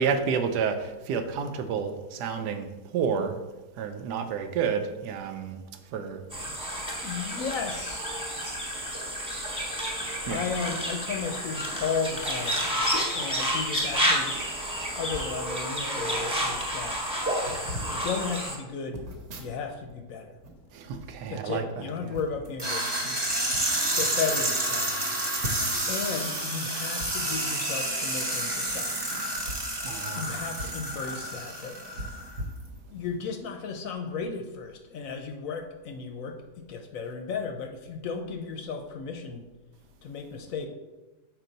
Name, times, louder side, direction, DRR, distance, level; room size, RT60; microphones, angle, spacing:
voice 1, 0.0-3.4 3.8-5.6 5.9-6.2 10.2-10.4 13.0-13.3 13.8-14.2 14.9-15.0 20.7-22.2 29.7-30.3 30.6-30.9, right 6 dB, 90° right, 8 dB, 1.2 m, -31 dB
sound 1, 6.3-18.6, equal, 5° right, 1.1 m, -30 dB
voice 2, 6.8-8.2 10.3-12.7 13.1-14.5 14.9-17.2 17.9-19.1 19.4-20.3 21.3-23.2 23.9-25.0 25.9-29.1 30.1-31.8 32.9-39.5 40.0-40.7, left 5 dB, 70° left, 6 dB, 0.9 m, -34 dB
sound 2, 15.1-15.4 16.2-16.3 16.5-16.8 17.4-17.9 18.9-20.0 20.3-21.6 22.1-22.5 23.2-23.6 24.2-24.3 24.5-24.6 25.4-25.9 27.0-27.1 28.6-28.8 29.3-30.8 31.2-31.3 31.9-33.2 33.6-33.8, equal, 65° right, 1.3 m, -40 dB
sound 3, 22.6-32.4, right 1 dB, 20° right, 0.8 m, -30 dB
5.9 x 4.6 x 3.9 m, 1.1 s
omnidirectional pair, 1.8 m